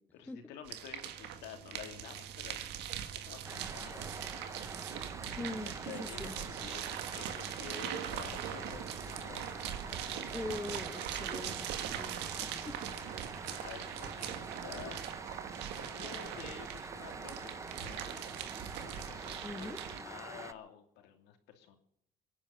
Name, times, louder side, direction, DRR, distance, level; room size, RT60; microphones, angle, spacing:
voice 1, 0.1-2.6 2.8-4.1 5.6-10.4 12.8-15.0 15.7-18.2 18.5-21.8, left 9 dB, 90° left, 5 dB, 2.7 m, -50 dB
sound 1, 0.7-20.0, right 10 dB, 90° right, 1.7 m, -41 dB
sound 2, 3.4-20.5, right 3 dB, 15° right, 0.8 m, -46 dB
voice 2, 5.4-6.3 10.3-12.8 19.4-19.8, left 2 dB, 10° left, 10 dB, 1.0 m, -42 dB
23.5 x 10.0 x 5.8 m, 0.73 s
cardioid pair, 110°, 17 cm